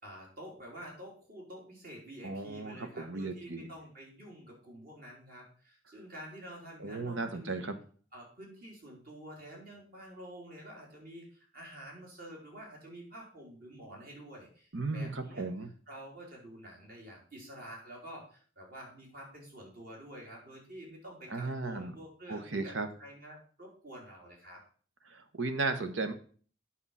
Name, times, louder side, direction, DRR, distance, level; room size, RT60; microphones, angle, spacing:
voice 1, 0.0-7.7 8.1-15.5 15.9-24.6, right 1 dB, 50° right, -1 dB, 3.6 m, -49 dB
voice 2, 2.2-3.7 6.8-7.8 14.7-15.7 21.3-21.9 22.3-22.9 25.1-26.1, right 3 dB, 85° right, 9 dB, 1.2 m, -35 dB
8.8 x 5.8 x 5.6 m, 0.44 s
head